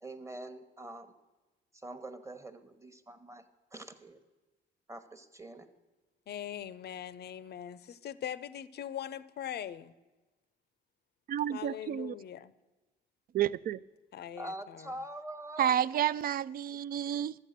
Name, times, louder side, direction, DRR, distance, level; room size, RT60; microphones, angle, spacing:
voice 1, 0.0-1.1 1.7-4.2 4.9-5.7 14.4-15.7, right 1 dB, 15° right, 1.0 m, -44 dB
voice 2, 6.3-9.9 11.5-12.5 14.1-14.9, left 10 dB, 55° left, 0.6 m, -41 dB
voice 3, 11.3-12.1 13.3-13.8 15.6-17.4, right 10 dB, 50° right, 0.4 m, -30 dB
11.5 x 8.2 x 6.6 m
cardioid pair, 90°, 20 cm